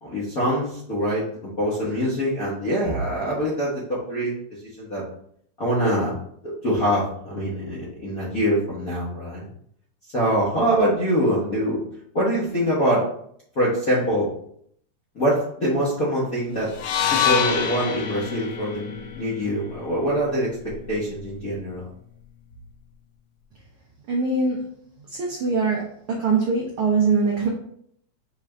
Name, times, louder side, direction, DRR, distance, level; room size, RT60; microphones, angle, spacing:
voice 1, 0.0-4.3 4.8-5.0 5.6-6.1 6.6-9.5 10.1-11.8 12.1-13.0 13.5-14.3 15.1-16.7 17.1-21.9, equal, 60° left, -9 dB, 0.9 m, -24 dB
sound 1, 16.7-20.9, left 8 dB, 80° left, 1.9 m, -27 dB
voice 2, 24.1-24.6 25.2-25.8 26.1-27.5, right 4 dB, 85° right, -1 dB, 1.2 m, -22 dB
6.6 x 2.4 x 3.2 m, 0.67 s
omnidirectional pair, 3.3 m